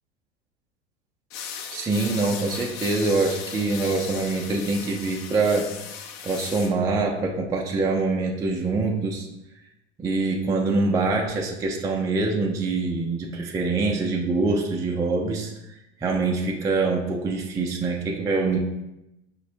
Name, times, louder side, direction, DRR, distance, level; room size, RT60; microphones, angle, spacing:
sound 1, 1.3-6.7, left 7 dB, 60° left, 0.6 m, -37 dB
voice 1, 1.7-5.7 6.2-9.3 10.0-15.5 16.0-18.6, right 3 dB, 10° right, 0 dB, 0.3 m, -24 dB
5.7 x 2.1 x 2.6 m, 0.92 s
hypercardioid pair, 85°, 33 cm